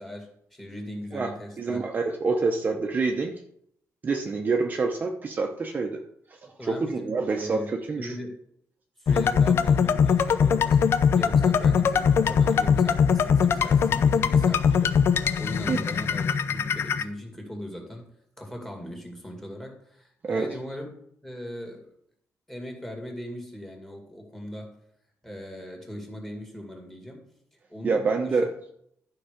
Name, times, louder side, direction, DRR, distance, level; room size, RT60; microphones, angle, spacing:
voice 1, 0.0-1.8 6.6-7.7 8.0-8.3 9.0-14.9 15.4-18.1 18.4-20.9 21.2-21.9 22.5-24.8 25.2-27.3 27.7-28.5, equal, 5° left, 2 dB, 2.2 m, -39 dB
voice 2, 1.1-3.3 4.0-6.0 6.3-8.2 15.7-15.9 20.2-20.5 27.8-28.5, right 4 dB, 30° right, 3 dB, 0.8 m, -27 dB
sound 1, 9.1-17.0, left 6 dB, 50° left, 0.5 m, -21 dB
11.5 x 5.6 x 5.0 m, 0.71 s
cardioid pair, 160°, 5 cm